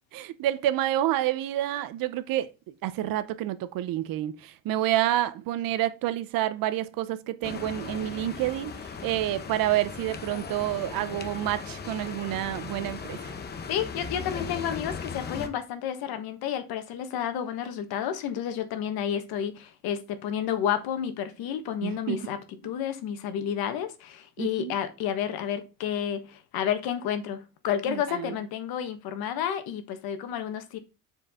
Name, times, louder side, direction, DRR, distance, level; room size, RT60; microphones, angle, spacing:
voice 1, 0.1-8.7 9.0-13.4 21.8-22.3 24.4-24.8 27.9-28.3, right 13 dB, 65° right, 0.8 m, -29 dB
sound 1, 7.4-15.5, left 5 dB, 25° left, 0.8 m, -38 dB
voice 2, 13.7-22.4 22.6-30.8, left 9 dB, 75° left, 1.4 m, -31 dB
7.8 x 4.7 x 3.6 m
cardioid pair, 170°, 37 cm